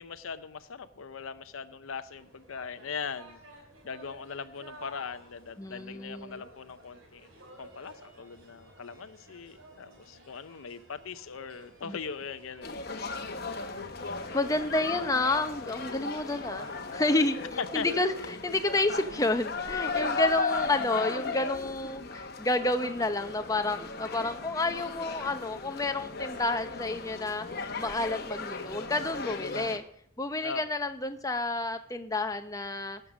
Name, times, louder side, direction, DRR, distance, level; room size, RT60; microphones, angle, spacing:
voice 1, 0.0-3.4 3.8-7.3 7.6-12.9 17.6-17.9 30.4-30.6, left 6 dB, 80° left, 12 dB, 0.6 m, -40 dB
sound 1, 2.2-22.0, right 1 dB, 75° right, 3.2 m, -55 dB
voice 2, 5.6-6.4 11.9-12.0 14.3-16.7 16.9-17.4 17.7-27.5 27.8-29.8 30.2-33.0, left 2 dB, 15° left, 8 dB, 0.7 m, -30 dB
sound 2, 12.6-29.8, left 3 dB, 50° left, 1.0 m, -36 dB
17.5 x 6.8 x 6.1 m, 0.70 s
head